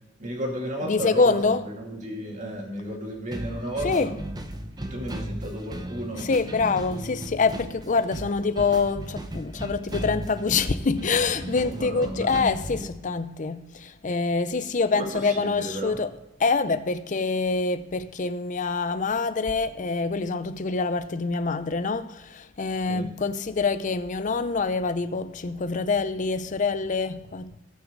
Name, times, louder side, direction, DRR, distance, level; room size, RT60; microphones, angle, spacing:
voice 1, 0.2-4.1 4.9-6.3 11.6-12.6 14.9-16.0 22.9-23.1, equal, 40° right, 2.5 m, -33 dB
voice 2, 0.8-1.7 3.8-4.2 6.2-16.1 16.4-27.6, left 4 dB, 40° left, 0.5 m, -25 dB
sound 1, 3.3-12.9, right 1 dB, 20° right, 0.8 m, -36 dB
17.0 x 6.1 x 3.9 m
head